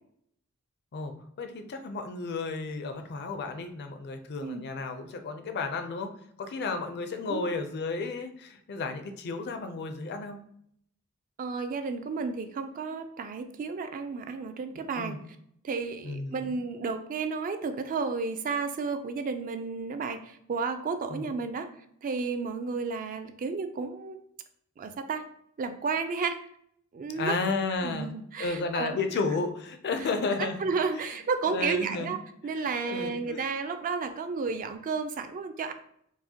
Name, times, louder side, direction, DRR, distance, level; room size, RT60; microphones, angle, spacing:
voice 1, 0.9-6.1 6.4-10.4 15.0-15.2 16.0-16.4 21.1-21.3 27.1-28.1 28.4-30.6 31.5-32.2 32.9-33.5, left 3 dB, 50° left, 7 dB, 0.4 m, -32 dB
voice 2, 11.4-15.2 15.6-21.7 22.0-24.2 24.8-25.3 25.6-26.5 26.9-27.4 27.8-29.0 30.0-30.1 30.4-32.2 32.4-35.7, right 4 dB, 40° right, 8 dB, 0.3 m, -32 dB
4.6 x 2.1 x 2.8 m, 0.69 s
head